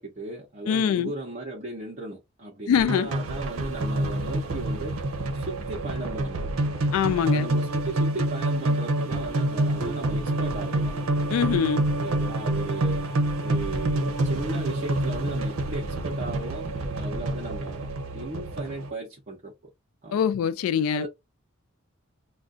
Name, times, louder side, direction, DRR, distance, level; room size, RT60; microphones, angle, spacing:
voice 1, 0.0-4.9 5.3-6.6 7.2-10.9 12.0-19.5 20.0-20.2 20.9-21.1, right 2 dB, 40° right, 0.8 m, -36 dB
voice 2, 0.7-1.1 2.7-3.1 6.9-7.5 11.3-11.8 20.1-21.1, left 7 dB, 85° left, 0.3 m, -23 dB
sound 1, 2.7-18.9, right 1 dB, 75° right, 0.7 m, -27 dB
2.5 x 2.2 x 3.7 m
head